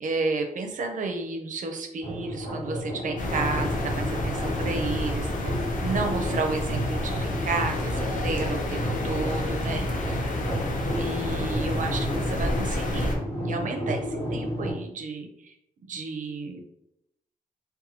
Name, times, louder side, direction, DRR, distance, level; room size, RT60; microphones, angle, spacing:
voice 1, 0.0-10.2 11.0-13.1 13.4-15.5 15.8-16.7, right 3 dB, 60° right, 4 dB, 0.5 m, -32 dB
sound 1, 2.0-14.7, equal, 45° left, 1.4 m, -32 dB
sound 2, 3.2-13.1, left 1 dB, 60° left, 0.5 m, -29 dB
2.6 x 2.2 x 2.8 m, 0.80 s
wide cardioid pair, 120°, 15 cm